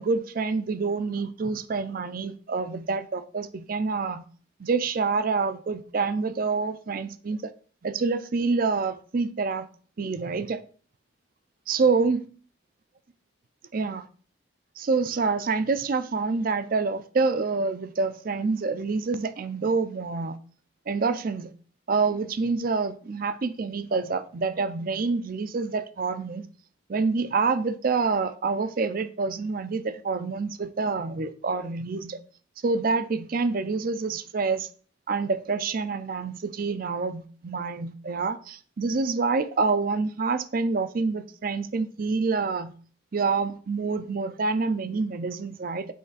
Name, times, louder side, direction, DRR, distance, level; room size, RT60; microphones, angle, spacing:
voice 1, 0.0-4.2 4.6-7.5 7.8-9.7 10.0-10.6 11.7-12.2 13.7-14.1 14.8-20.4 20.9-21.5 21.9-26.4 26.9-32.2 32.6-34.7 35.1-42.7 43.1-45.9, right 4 dB, 45° right, 0.4 m, -27 dB
7.6 x 3.4 x 4.0 m
head